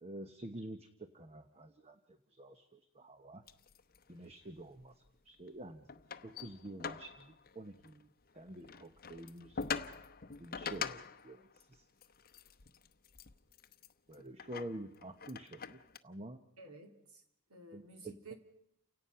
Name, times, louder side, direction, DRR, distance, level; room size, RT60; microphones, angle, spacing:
voice 1, 0.0-3.4 4.1-4.9 5.3-5.9 6.2-8.1 8.3-9.7 10.4-11.8 14.1-16.4 17.7-17.8, right 1 dB, 30° right, 8 dB, 0.9 m, -48 dB
sound 1, 3.5-4.3 4.6-5.2 5.5-5.6 5.9-8.0 8.3-16.0, left 6 dB, 45° left, 0.8 m, -44 dB
voice 2, 16.6-17.2 17.5-18.4, right 2 dB, 80° right, 4 dB, 3.0 m, -53 dB
29.5 x 17.5 x 5.7 m, 0.77 s
head